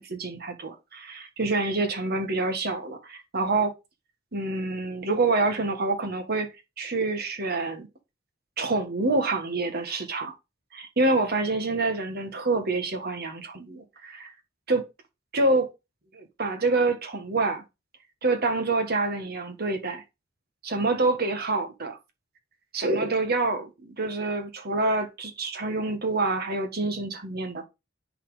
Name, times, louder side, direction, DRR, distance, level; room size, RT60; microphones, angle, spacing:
voice 1, 0.0-3.7 4.3-6.5 6.8-7.9 8.6-10.3 10.7-14.3 14.7-14.8 15.3-15.7 16.1-17.6 18.2-20.0 20.6-22.0 22.7-27.6, right 3 dB, 55° right, 1.6 m, -27 dB
9.9 x 4.2 x 5.0 m
head